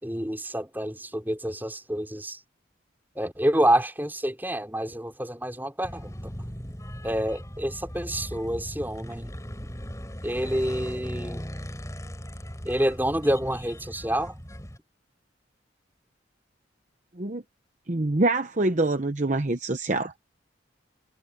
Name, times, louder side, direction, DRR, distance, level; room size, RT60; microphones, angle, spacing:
voice 1, 0.0-2.4 3.1-6.3 7.0-9.3 10.2-11.4 12.6-14.4, right 1 dB, 10° right, 4.8 m, -28 dB
sound 1, 5.8-14.8, equal, 15° left, 4.6 m, -38 dB
voice 2, 17.9-20.1, right 2 dB, 40° right, 0.9 m, -25 dB
head